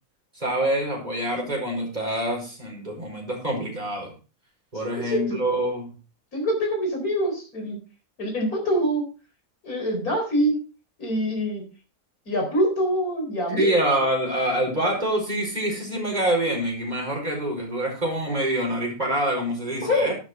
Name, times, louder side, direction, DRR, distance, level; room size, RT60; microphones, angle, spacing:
voice 1, 0.3-4.1 4.7-5.9 13.5-20.1, right 1 dB, 30° right, 0 dB, 5.1 m, -26 dB
voice 2, 5.0-5.4 6.3-7.8 8.2-9.1 9.6-10.6 11.0-11.7 12.3-13.8 19.8-20.1, equal, 80° left, 2 dB, 4.9 m, -25 dB
11.5 x 9.6 x 3.7 m, 0.34 s
omnidirectional pair, 1.5 m